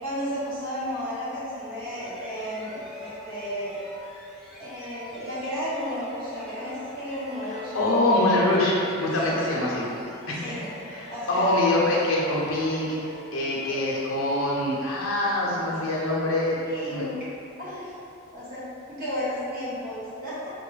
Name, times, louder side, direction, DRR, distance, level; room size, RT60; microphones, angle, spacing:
voice 1, 0.0-3.8 4.6-7.7 9.3-9.6 10.4-10.7 11.1-11.6 15.7-15.8 16.6-17.2 17.6-17.9 18.3-20.5, equal, 40° right, -10 dB, 1.0 m, -33 dB
sound 1, 1.7-15.2, left 1 dB, ahead, 0.3 m, -44 dB
voice 2, 7.7-9.9 10.3-10.5 10.8-13.0 13.3-16.6 16.9-17.1, left 1 dB, 75° left, -5 dB, 0.7 m, -24 dB
3.8 x 2.3 x 3.1 m, 2.7 s
head